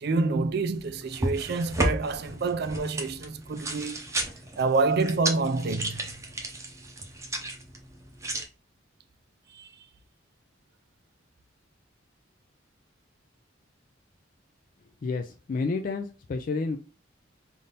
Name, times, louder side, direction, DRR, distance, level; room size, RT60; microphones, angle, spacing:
voice 1, 0.0-4.0 4.6-6.0 9.5-9.7, right 3 dB, 55° right, 0.4 m, -27 dB
sound 1, 0.7-8.5, right 1 dB, 15° right, 0.7 m, -33 dB
voice 2, 15.0-16.8, left 4 dB, 45° left, 0.3 m, -30 dB
3.5 x 2.6 x 4.0 m
head